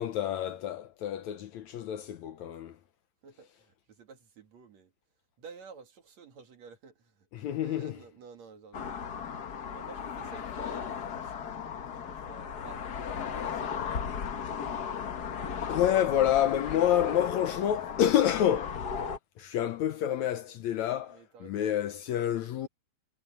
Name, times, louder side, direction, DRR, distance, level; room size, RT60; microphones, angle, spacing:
voice 1, 0.0-2.8 7.3-8.0 15.7-18.9 19.4-22.7, left 11 dB, 70° left, 2.0 m, -28 dB
voice 2, 3.2-4.9 5.4-9.2 9.7-15.5 16.1-16.4 21.1-21.7, right 5 dB, 55° right, 3.2 m, -52 dB
sound 1, 8.7-19.2, left 7 dB, 90° left, 0.8 m, -36 dB
omnidirectional pair, 3.8 m